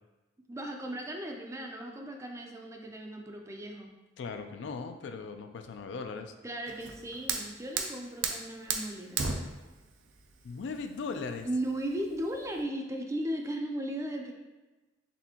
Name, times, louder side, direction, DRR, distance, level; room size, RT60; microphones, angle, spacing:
voice 1, 0.5-3.9 6.4-9.3 11.4-14.3, right 1 dB, 15° right, 2 dB, 0.4 m, -36 dB
voice 2, 4.2-6.3 10.4-11.5, left 4 dB, 70° left, 6 dB, 0.3 m, -38 dB
Fire, 6.7-12.6, right 5 dB, 85° right, 0.5 m, -36 dB
4.1 x 3.5 x 2.8 m, 1.1 s
head